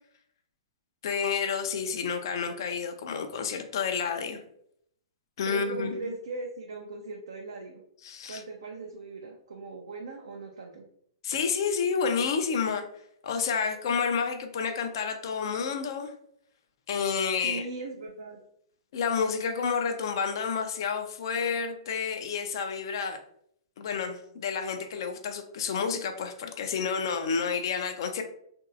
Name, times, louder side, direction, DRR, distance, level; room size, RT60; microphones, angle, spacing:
voice 1, 1.0-4.4 5.4-5.9 8.0-8.4 11.2-12.9 13.2-16.1 16.9-17.7 18.9-23.2 23.8-28.2, left 6 dB, 65° left, 7 dB, 0.5 m, -30 dB
voice 2, 5.5-7.8 8.3-10.8 17.4-18.4, right 3 dB, 75° right, 1 dB, 0.4 m, -39 dB
3.0 x 2.6 x 2.5 m, 0.70 s
hypercardioid pair, 120°, 3 cm